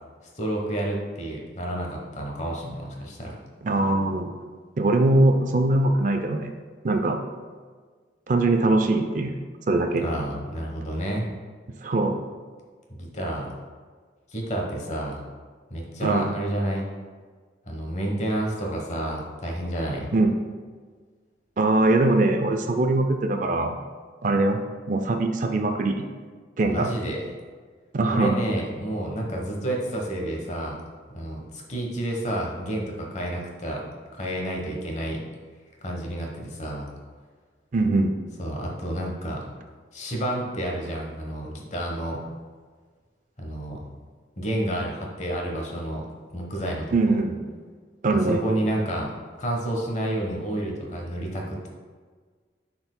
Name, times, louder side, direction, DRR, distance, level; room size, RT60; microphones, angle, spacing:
voice 1, 0.4-3.4 10.0-11.2 12.9-13.5 14.3-15.2 15.7-16.9 17.7-20.1 26.6-27.2 28.1-30.8 31.1-33.8 34.1-35.2 35.8-36.9 38.4-39.4 39.9-42.2 43.4-43.8 44.4-46.0 46.3-46.9 48.3-49.1 49.4-51.7, right 1 dB, 40° left, 0 dB, 1.0 m, -30 dB
voice 2, 3.6-4.3 4.8-6.5 6.8-7.2 8.3-9.4 9.7-10.0 11.8-12.2 16.0-16.3 20.1-20.3 21.6-23.8 24.2-24.6 24.9-26.0 26.6-26.9 27.9-28.4 37.7-38.1 46.9-47.4 48.0-48.4, right 2 dB, 45° right, 5 dB, 0.4 m, -22 dB
10.5 x 4.4 x 2.2 m, 1.5 s
head